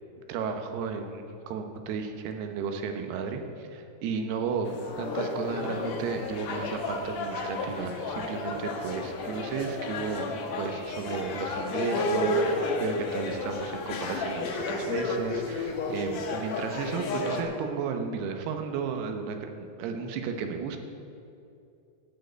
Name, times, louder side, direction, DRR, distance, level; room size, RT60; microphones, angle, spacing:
voice 1, 0.3-4.7 5.0-20.8, right 5 dB, 90° right, 6 dB, 3.0 m, -33 dB
sound 1, 4.7-17.4, left 2 dB, 65° left, 1.8 m, -32 dB
12.0 x 6.4 x 8.1 m, 2.5 s
omnidirectional pair, 4.5 m